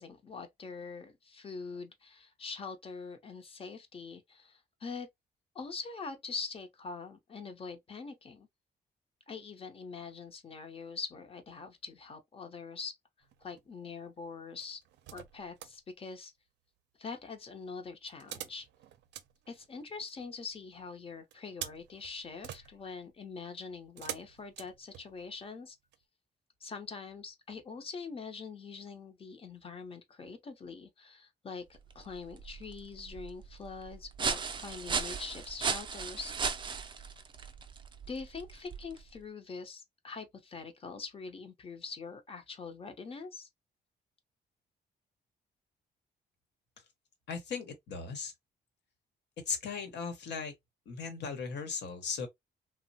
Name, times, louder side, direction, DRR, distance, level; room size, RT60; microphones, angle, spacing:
voice 1, 0.0-5.1 5.5-8.5 9.3-13.0 13.4-14.8 15.1-16.3 17.0-18.7 19.5-25.8 26.6-31.6 31.9-36.3 38.1-43.5, left 4 dB, 30° left, 0.7 m, -43 dB
sound 1, 13.2-13.7 14.6-15.8 18.1-20.3 21.3-25.4 25.9-26.0, right 11 dB, 90° right, 0.4 m, -47 dB
sound 2, 31.7-39.2, right 5 dB, 30° right, 0.4 m, -37 dB
voice 2, 47.3-48.3 49.5-50.5 50.9-52.3, left 5 dB, 75° left, 1.0 m, -37 dB
3.1 x 2.1 x 2.6 m
cardioid pair, 135°, 18 cm